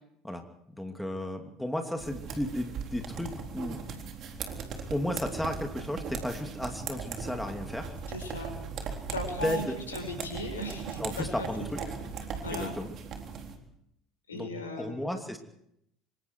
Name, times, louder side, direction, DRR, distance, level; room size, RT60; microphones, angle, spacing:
voice 1, 0.8-3.8 4.9-8.0 9.4-9.8 11.0-11.8 12.5-12.9 14.3-14.5 14.8-15.4, left 1 dB, 5° left, 4 dB, 2.8 m, -34 dB
sound 1, 2.0-13.6, right 5 dB, 50° right, 3.9 m, -39 dB
voice 2, 8.1-8.5 9.1-11.7 12.4-12.8 14.3-15.0, left 1 dB, 85° left, 4 dB, 5.6 m, -37 dB
25.5 x 24.5 x 4.7 m, 0.76 s
figure-of-eight pair, 65°, 0 cm